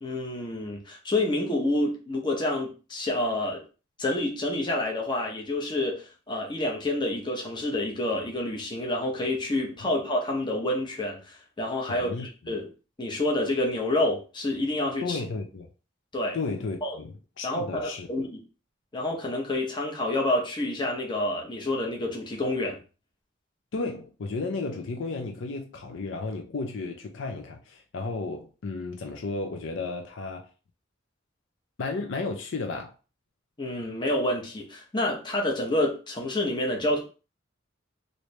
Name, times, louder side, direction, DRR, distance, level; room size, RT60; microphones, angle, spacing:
voice 1, 0.0-3.6 4.0-12.7 13.0-15.2 16.1-16.4 16.8-17.0 17.4-18.4 18.9-22.8 33.6-37.0, left 1 dB, 25° left, 0.8 m, -28 dB
voice 2, 11.9-12.3 15.0-15.7 16.3-18.1 23.7-30.5 31.8-32.9, left 3 dB, 65° left, 0.5 m, -33 dB
3.1 x 2.6 x 3.1 m
head